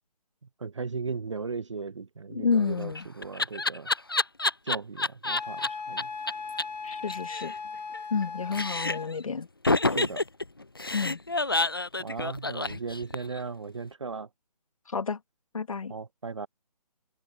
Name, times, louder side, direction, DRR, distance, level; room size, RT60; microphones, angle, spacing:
voice 1, 0.6-3.9 4.6-6.1 9.9-10.2 12.0-14.3 15.9-16.5, right 4 dB, 45° right, 0.6 m, -37 dB
voice 2, 2.3-3.1 6.8-7.5 8.1-9.5 10.9-11.2 14.9-15.2 15.5-15.9, left 5 dB, 55° left, 1.5 m, -29 dB
Laughter, 2.6-5.7 6.0-6.1 6.3-6.4 6.6-6.7 6.9-8.2 8.5-9.1 9.6-13.4, left 2 dB, 35° left, 0.4 m, -28 dB
Wind instrument woodwind instrument, 5.2-9.1, left 5 dB, 85° left, 1.0 m, -38 dB
hypercardioid pair, 175°, 21 cm